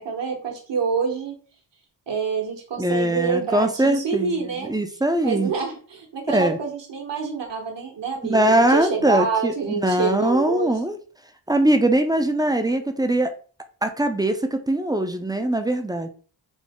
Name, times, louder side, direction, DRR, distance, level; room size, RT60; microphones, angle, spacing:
voice 1, 0.0-1.3 2.1-4.7 5.2-10.8, right 5 dB, 70° right, 1 dB, 1.2 m, -27 dB
voice 2, 2.8-5.5 6.3-6.6 8.2-11.0 11.5-13.3 13.8-16.1, right 1 dB, 10° right, 7 dB, 0.3 m, -21 dB
3.8 x 2.0 x 3.5 m, 0.41 s
wide cardioid pair, 90°, 45 cm